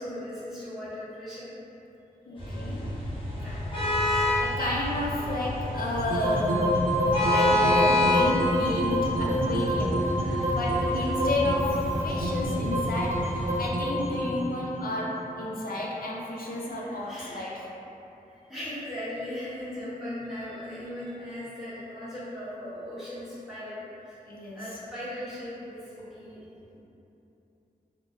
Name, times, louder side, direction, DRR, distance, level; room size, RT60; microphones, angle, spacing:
voice 1, 0.0-1.5 3.4-3.9 4.3-4.4 10.1-10.6 16.4-17.5 18.3-24.2 24.5-26.4 26.7-26.8, left 1 dB, 5° right, -13 dB, 1.2 m, -39 dB
voice 2, 2.3-2.9 4.1-6.8 7.2-10.0 10.5-17.7 19.9-20.2 24.3-24.7, left 2 dB, 70° left, -4 dB, 0.4 m, -32 dB
sound 1, 2.4-13.7, left 1 dB, 35° left, 0.9 m, -29 dB
sound 2, 6.0-16.2, equal, 65° right, 0.4 m, -27 dB
3.1 x 2.1 x 2.7 m, 2.9 s
wide cardioid pair, 85°, 16 cm